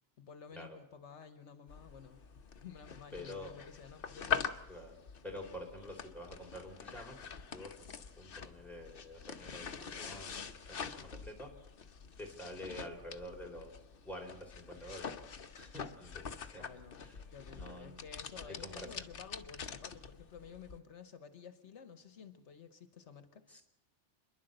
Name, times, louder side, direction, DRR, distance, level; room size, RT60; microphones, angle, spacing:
voice 1, 0.2-2.2 2.6-4.9 16.6-17.0 17.3-23.6, left 6 dB, 75° left, 10 dB, 1.3 m, -53 dB
sound 1, 1.7-20.8, left 7 dB, 55° left, 1.1 m, -44 dB
voice 2, 3.1-3.6 4.7-5.0 5.2-11.5 12.2-13.7 14.0-15.1 15.5-16.6 17.0-17.2 17.5-18.0 18.4-18.9 23.5-23.6, left 1 dB, ahead, 0 dB, 3.8 m, -48 dB
30.0 x 11.0 x 7.9 m, 0.86 s
omnidirectional pair, 1.2 m